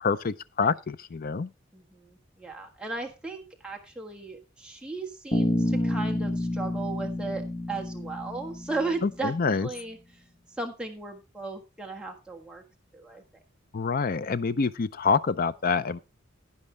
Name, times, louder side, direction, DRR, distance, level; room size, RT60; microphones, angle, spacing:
voice 1, 0.0-1.5 9.0-9.7 13.7-16.0, left 5 dB, 45° left, 0.5 m, -26 dB
voice 2, 1.7-10.0 10.6-12.6 12.9-13.2, right 3 dB, 5° right, 1.5 m, -36 dB
Bass guitar, 5.3-9.4, left 1 dB, 30° left, 1.3 m, -29 dB
11.0 x 9.6 x 3.3 m
head